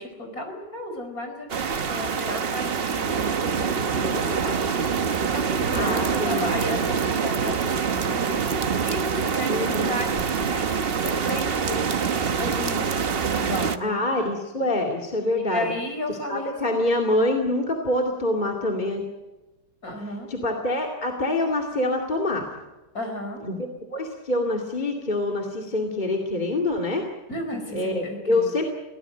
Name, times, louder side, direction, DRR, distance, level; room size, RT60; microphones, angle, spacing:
voice 1, 0.0-4.6 5.3-14.1 15.5-16.8 19.8-20.3 22.9-23.4 27.3-28.5, left 1 dB, 45° left, 5 dB, 5.2 m, -34 dB
sound 1, 1.5-13.8, right 6 dB, 40° right, 0.9 m, -25 dB
voice 2, 5.7-6.5 9.4-10.0 13.8-15.7 16.3-19.0 20.3-22.5 23.4-27.0 27.7-28.7, left 1 dB, 20° left, 1 dB, 2.4 m, -25 dB
23.5 x 17.5 x 9.0 m, 1.1 s
omnidirectional pair, 2.2 m